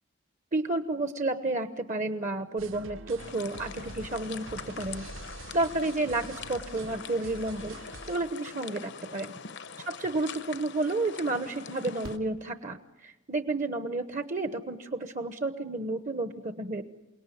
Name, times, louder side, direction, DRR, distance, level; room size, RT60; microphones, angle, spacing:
voice 1, 0.5-5.1 5.5-7.7 8.1-9.4 9.9-16.8, right 2 dB, 35° right, 9 dB, 1.0 m, -31 dB
sound 1, 2.6-8.2, right 3 dB, 65° right, 1.0 m, -45 dB
sound 2, 3.2-12.2, left 6 dB, 55° left, 0.8 m, -43 dB
Fireworks, 12.0-13.3 15.1-15.2 15.4-15.5, right 1 dB, 85° right, 2.6 m, -48 dB
28.5 x 18.5 x 9.3 m, 1.0 s
head